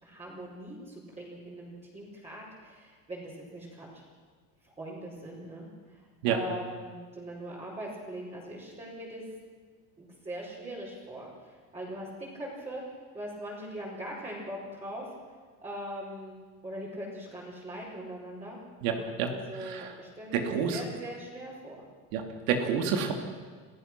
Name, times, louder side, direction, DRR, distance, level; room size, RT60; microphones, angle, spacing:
voice 1, 0.0-4.0 4.8-9.2 10.0-12.8 13.1-15.1 15.6-16.4 16.6-18.6 18.9-21.8, right 1 dB, 15° right, -6 dB, 4.8 m, -41 dB
voice 2, 18.8-19.3 19.6-19.9 20.3-20.8 22.1-23.1, right 7 dB, 85° right, 4 dB, 2.9 m, -29 dB
27.5 x 15.5 x 6.1 m, 1.5 s
cardioid pair, 140°, 38 cm